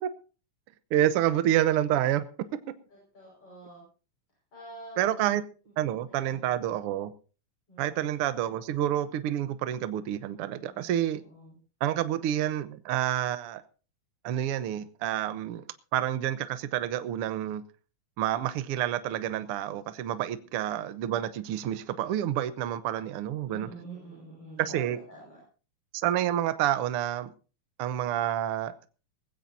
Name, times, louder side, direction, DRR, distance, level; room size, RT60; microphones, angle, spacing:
voice 1, 0.9-2.2 5.0-5.4 5.8-7.1 7.8-11.2 11.8-13.6 14.2-15.6 15.9-17.6 18.2-23.7 24.6-25.0 25.9-27.3 27.8-28.9, right 12 dB, 70° right, 1.4 m, -28 dB
voice 2, 2.9-3.8 4.5-5.0 5.8-6.6 7.7-8.1 10.6-11.6 23.5-25.4, right 2 dB, 45° left, 6.4 m, -47 dB
19.5 x 16.0 x 2.7 m
omnidirectional pair, 3.6 m